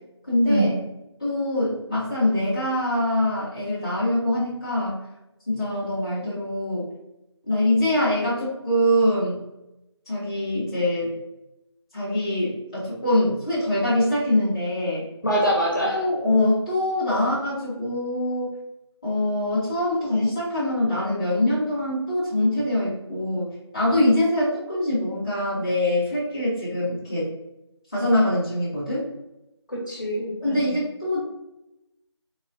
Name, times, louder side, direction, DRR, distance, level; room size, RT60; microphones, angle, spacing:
voice 1, 0.3-0.7 1.2-5.0 5.5-6.9 7.5-9.4 10.1-11.1 11.9-15.1 15.8-18.5 19.0-23.5 23.7-27.3 27.9-29.0 30.4-31.2, left 1 dB, 10° left, -14 dB, 1.0 m, -23 dB
voice 2, 15.2-16.0 29.7-30.8, equal, 45° left, -4 dB, 1.2 m, -24 dB
3.9 x 3.6 x 2.6 m, 0.91 s
figure-of-eight pair, 175°, 15 cm